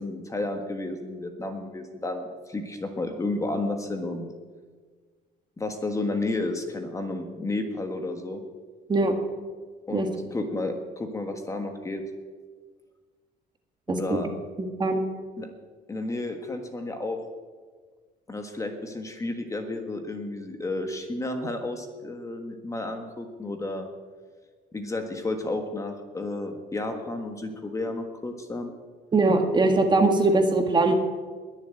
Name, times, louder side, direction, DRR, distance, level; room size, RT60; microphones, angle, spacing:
voice 1, 0.0-4.3 5.6-8.4 9.9-12.0 13.9-14.3 15.4-15.5 15.9-17.2 18.3-23.9 24.7-28.7, left 2 dB, 15° left, 5 dB, 1.5 m, -32 dB
voice 2, 29.1-30.9, right 3 dB, 25° right, 4 dB, 1.8 m, -21 dB
21.0 x 7.4 x 9.0 m, 1.5 s
cardioid pair, 145°, 18 cm